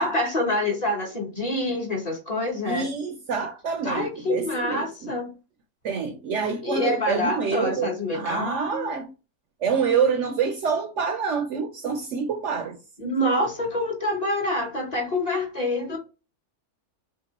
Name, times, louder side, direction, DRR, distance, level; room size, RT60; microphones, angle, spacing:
voice 1, 0.0-2.9 3.8-5.3 6.6-8.9 13.0-16.0, left 1 dB, 30° left, 1.0 m, -26 dB
voice 2, 2.7-5.1 5.8-9.1 9.6-12.8, right 6 dB, 65° right, 0.8 m, -27 dB
3.3 x 2.9 x 4.0 m
omnidirectional pair, 1.5 m